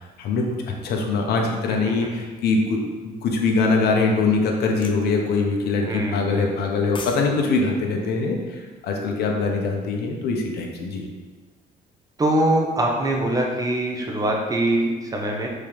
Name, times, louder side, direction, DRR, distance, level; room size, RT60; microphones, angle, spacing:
voice 1, 0.8-11.0, left 3 dB, 70° left, 1 dB, 1.1 m, -23 dB
sound 1, 4.8-5.0 6.6-7.3 7.6-7.7, left 4 dB, 30° left, 0.6 m, -36 dB
voice 2, 5.8-6.6 12.2-15.5, right 1 dB, 20° right, 0 dB, 1.1 m, -23 dB
5.4 x 3.8 x 5.2 m, 1.4 s
cardioid pair, 110°, 17 cm